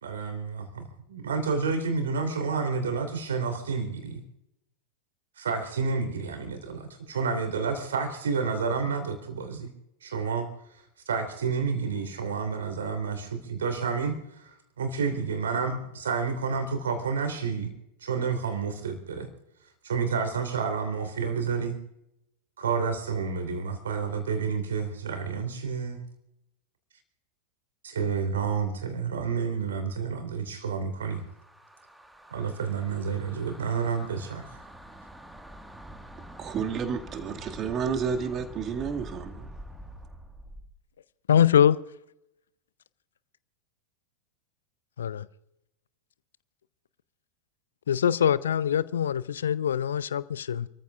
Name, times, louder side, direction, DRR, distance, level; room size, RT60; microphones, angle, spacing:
voice 1, 0.0-4.2 5.4-9.7 10.0-10.5 11.1-17.7 18.0-19.3 19.8-21.8 22.6-26.0 27.8-31.2 32.3-34.6, right 5 dB, 65° right, 3.3 m, -30 dB
sound 1, 31.0-40.7, right 1 dB, 5° right, 1.6 m, -46 dB
voice 2, 36.4-39.5, right 6 dB, 30° right, 2.0 m, -31 dB
voice 3, 41.3-41.8 45.0-45.3 47.9-50.7, left 9 dB, 65° left, 0.5 m, -23 dB
29.0 x 14.5 x 2.4 m
figure-of-eight pair, 90°, 0 cm